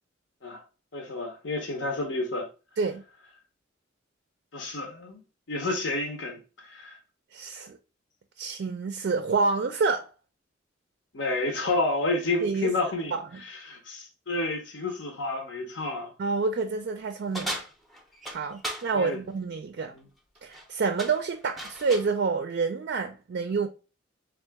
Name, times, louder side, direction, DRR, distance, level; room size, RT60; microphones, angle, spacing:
voice 1, 0.9-2.5 4.5-5.2 5.5-7.0 11.1-16.1 18.9-19.2 19.9-20.1, left 2 dB, 70° left, 0.7 m, -30 dB
voice 2, 7.3-7.8 8.4-10.1 12.4-12.7 13.1-13.2 16.2-17.6 18.3-19.9 20.4-23.7, right 4 dB, 55° right, 0.4 m, -28 dB
sound 1, 17.3-18.9 20.4-20.7 21.0-22.1, equal, ahead, 0.5 m, -36 dB
3.6 x 2.4 x 3.4 m
head